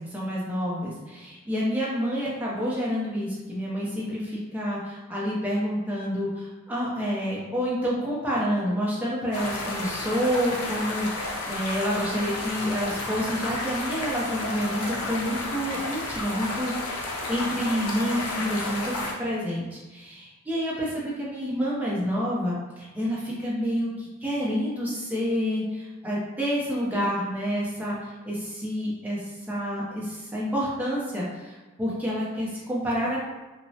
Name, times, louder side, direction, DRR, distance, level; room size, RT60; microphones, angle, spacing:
voice 1, 0.1-17.0 17.3-33.2, equal, 5° right, -7 dB, 0.6 m, -28 dB
sound 1, 9.3-19.1, left 2 dB, 80° left, 0.5 m, -32 dB
3.0 x 2.1 x 2.7 m, 1.2 s
head